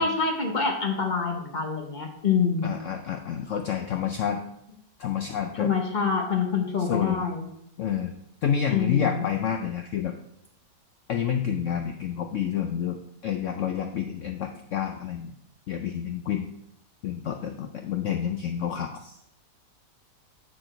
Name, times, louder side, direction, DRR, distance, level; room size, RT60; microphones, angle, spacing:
voice 1, 0.0-2.7 5.6-7.4 8.7-9.3, left 5 dB, 35° left, 2 dB, 0.9 m, -26 dB
voice 2, 2.6-4.4 5.0-5.7 6.8-7.3 7.8-8.1 8.4-10.1 11.1-15.3 15.7-16.5 17.0-19.2, left 8 dB, 75° left, 5 dB, 0.7 m, -29 dB
9.5 x 4.5 x 4.4 m, 0.76 s
omnidirectional pair, 1.8 m